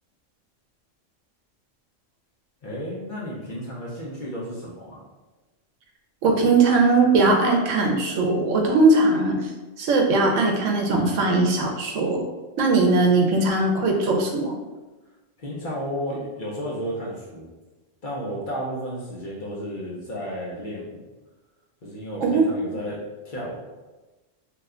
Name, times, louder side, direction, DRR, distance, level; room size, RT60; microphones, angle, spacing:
voice 1, 2.6-5.0 15.4-17.5 18.0-21.0 21.8-23.6, equal, 50° left, -5 dB, 0.7 m, -33 dB
voice 2, 6.2-9.4 9.8-12.2 12.6-14.6 22.2-22.5, right 3 dB, 80° right, 1 dB, 1.0 m, -19 dB
2.8 x 2.2 x 3.6 m, 1.2 s
omnidirectional pair, 1.3 m